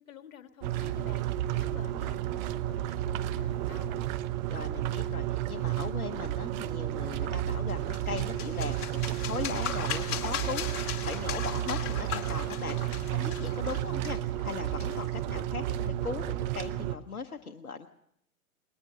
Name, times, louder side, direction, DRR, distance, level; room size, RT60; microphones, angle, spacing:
voice 1, 0.1-1.2 1.5-4.1, left 9 dB, 65° left, 9 dB, 1.7 m, -50 dB
sound 1, 0.6-16.9, right 12 dB, 30° right, 0.8 m, -32 dB
voice 2, 4.5-17.9, left 5 dB, 80° left, 6 dB, 1.1 m, -39 dB
sound 2, 7.7-15.2, left 9 dB, 30° left, 2.7 m, -38 dB
20.0 x 20.0 x 6.5 m, 0.79 s
figure-of-eight pair, 105°, 43 cm